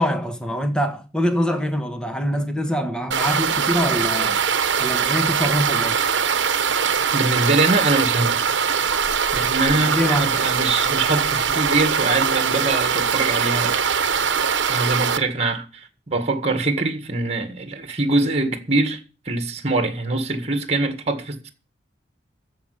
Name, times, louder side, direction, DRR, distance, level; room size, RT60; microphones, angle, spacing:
voice 1, 0.0-4.4 4.8-6.0 9.6-10.3, equal, 5° left, 1.4 m, -24 dB
sound 1, 3.1-15.2, right 6 dB, 75° right, 1.1 m, -22 dB
voice 2, 7.1-8.4 9.3-13.8 14.7-19.0 19.3-21.5, right 2 dB, 35° right, 1.8 m, -23 dB
14.5 x 5.3 x 9.5 m
head